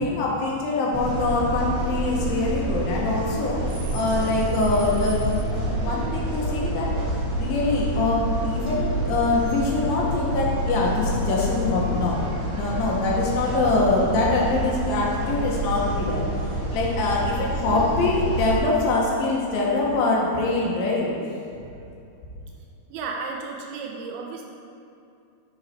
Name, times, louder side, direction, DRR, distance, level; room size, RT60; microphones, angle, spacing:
voice 1, 0.0-3.6 3.9-5.3 5.5-6.9 7.4-16.2 16.7-21.1, left 3 dB, 70° left, -3 dB, 3.2 m, -24 dB
sound 1, 0.9-18.5, right 1 dB, 60° right, 3.0 m, -28 dB
voice 2, 22.9-24.5, right 4 dB, 85° right, 0 dB, 2.7 m, -33 dB
12.0 x 5.8 x 4.5 m, 2.6 s
omnidirectional pair, 4.4 m